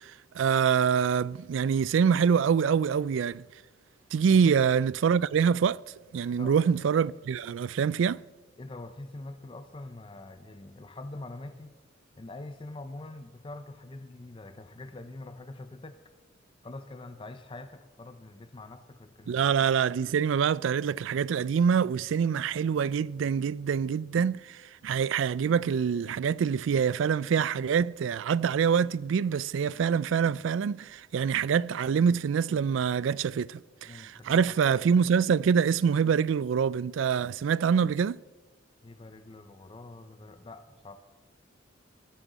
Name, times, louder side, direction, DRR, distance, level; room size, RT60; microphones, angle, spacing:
voice 1, 0.0-3.4 4.1-5.8 6.1-8.2 19.3-38.2, right 7 dB, 75° right, 0.3 m, -25 dB
voice 2, 6.3-6.6 8.6-11.7 12.2-16.0 16.6-19.5 33.8-34.8 38.8-41.0, left 2 dB, 25° left, 0.5 m, -44 dB
19.5 x 12.5 x 4.1 m
head